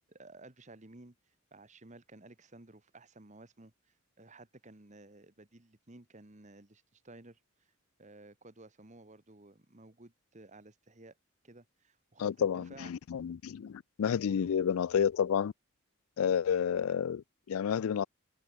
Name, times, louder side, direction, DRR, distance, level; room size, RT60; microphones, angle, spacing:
voice 1, 0.0-7.7 8.0-11.2 11.4-12.9 14.3-14.5, right 2 dB, 35° right, 1.5 m, -55 dB
voice 2, 12.2-15.5 16.2-18.0, left 8 dB, 75° left, 0.4 m, -30 dB
head